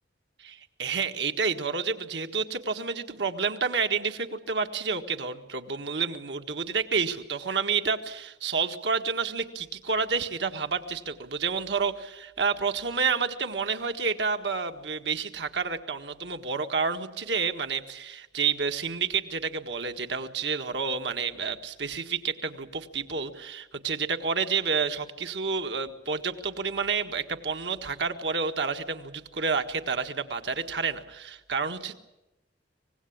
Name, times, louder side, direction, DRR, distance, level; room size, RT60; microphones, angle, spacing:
voice 1, 0.4-31.9, right 5 dB, 70° right, 6 dB, 1.7 m, -29 dB
25.0 x 19.5 x 8.7 m, 0.99 s
head